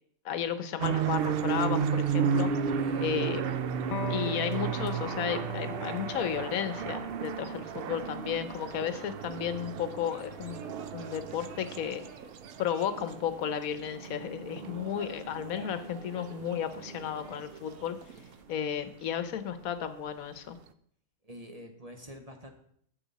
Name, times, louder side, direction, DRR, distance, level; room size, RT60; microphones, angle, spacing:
voice 1, 0.2-2.5 3.0-3.5 4.1-12.0 12.6-18.0 18.5-20.6, left 9 dB, 85° left, 11 dB, 1.2 m, -33 dB
sound 1, 0.8-17.5, right 7 dB, 60° right, 0.6 m, -34 dB
sound 2, 0.8-18.4, right 5 dB, 85° right, 1.5 m, -53 dB
voice 2, 2.8-3.1 14.6-14.7 21.2-22.5, equal, 30° right, 4 dB, 0.9 m, -46 dB
Electric guitar, 3.9-11.1, left 8 dB, 60° left, 0.8 m, -43 dB
10.0 x 7.5 x 4.1 m, 0.65 s
omnidirectional pair, 1.4 m